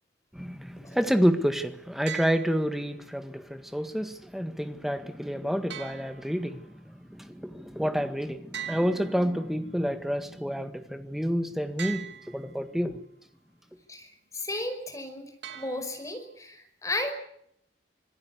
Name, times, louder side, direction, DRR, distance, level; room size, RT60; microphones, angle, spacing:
voice 1, 0.3-13.0, equal, ahead, 1.7 m, -29 dB
sound 1, 2.1-3.1 5.7-6.8 8.5-9.8 11.8-12.7 15.4-16.3, right 9 dB, 75° right, 3.2 m, -42 dB
voice 2, 14.3-17.1, left 1 dB, 20° left, 5.4 m, -34 dB
26.5 x 18.5 x 8.4 m
head